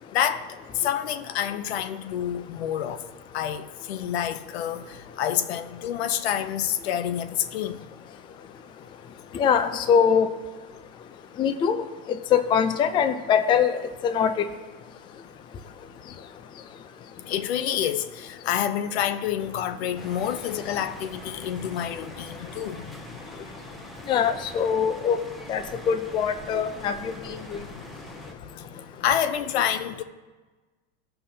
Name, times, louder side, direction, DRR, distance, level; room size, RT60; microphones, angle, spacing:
voice 1, 0.1-3.0 3.3-7.8 17.3-22.9 27.6-27.8 28.6-30.0, left 10 dB, 85° left, 0.6 m, -28 dB
voice 2, 9.3-10.3 11.4-11.8 12.3-14.4 24.1-25.2 25.5-27.6, left 7 dB, 15° left, 0.3 m, -23 dB
sound 1, 20.0-28.3, equal, ahead, 0.7 m, -44 dB
17.0 x 5.6 x 2.7 m
supercardioid pair, 135°, 31 cm